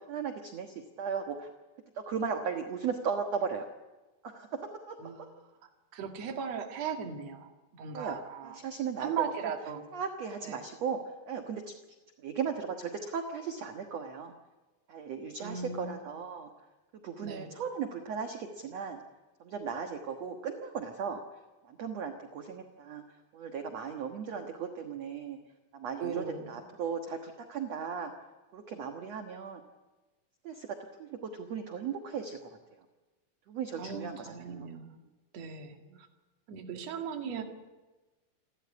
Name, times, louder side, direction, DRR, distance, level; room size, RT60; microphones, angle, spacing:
voice 1, 0.1-1.5 1.9-3.6 4.2-4.6 4.9-5.0 7.9-8.2 8.4-9.3 9.9-11.0 11.3-11.7 12.2-14.3 14.9-16.5 17.0-19.0 19.4-21.2 21.7-23.0 23.3-25.4 25.7-28.1 28.5-29.6 30.4-32.5 33.5-34.7 35.9-36.0, right 6 dB, 60° right, 4 dB, 1.7 m, -36 dB
voice 2, 5.9-8.6 9.0-9.8 10.4-10.6 15.4-16.0 17.2-17.5 26.0-26.6 33.8-34.9 35.3-36.1 36.5-37.4, right 7 dB, 45° right, 3 dB, 2.8 m, -37 dB
29.0 x 13.5 x 9.8 m, 1.2 s
omnidirectional pair, 4.9 m